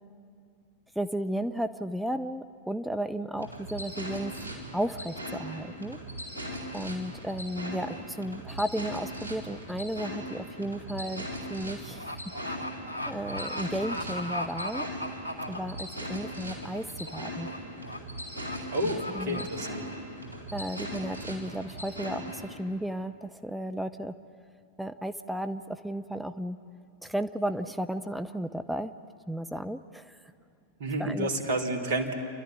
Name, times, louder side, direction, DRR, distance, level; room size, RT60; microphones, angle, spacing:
voice 1, 1.0-4.3 4.7-6.0 6.7-12.1 13.1-14.9 15.5-16.8 17.1-17.5 18.8-19.5 20.5-24.1 24.8-26.6 27.0-28.9 29.3-30.2 31.0-31.3, right 1 dB, ahead, 10 dB, 0.6 m, -34 dB
sound 1, 3.4-22.6, equal, 85° left, 3.6 m, -39 dB
sound 2, 10.0-10.2 10.6-16.1 16.5-16.8 17.1-17.6 17.8-18.0 18.4-18.6 19.0-19.5, left 1 dB, 85° right, 1.6 m, -37 dB
voice 2, 18.7-19.8 30.8-32.1, right 1 dB, 55° right, 2 dB, 2.7 m, -30 dB
29.0 x 12.0 x 9.7 m, 2.3 s
figure-of-eight pair, 90°, 0 cm